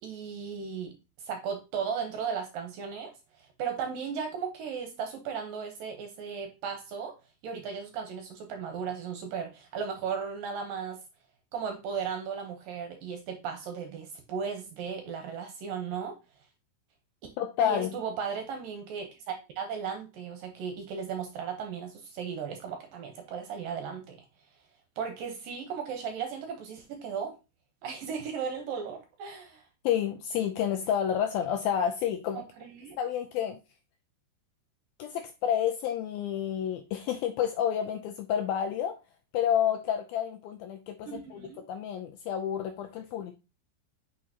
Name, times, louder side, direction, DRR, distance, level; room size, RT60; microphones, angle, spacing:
voice 1, 0.0-3.1 3.4-7.1 7.4-11.0 11.5-16.2 17.6-24.3 25.0-27.3 27.8-29.6 32.3-33.0 41.1-41.6, right 6 dB, 70° right, 4 dB, 2.3 m, -36 dB
voice 2, 17.4-17.9 29.8-32.4 33.0-33.6 35.0-39.0 39.3-41.4 41.7-43.4, left 9 dB, 80° left, 5 dB, 2.2 m, -29 dB
9.3 x 6.0 x 2.9 m, 0.28 s
omnidirectional pair, 4.9 m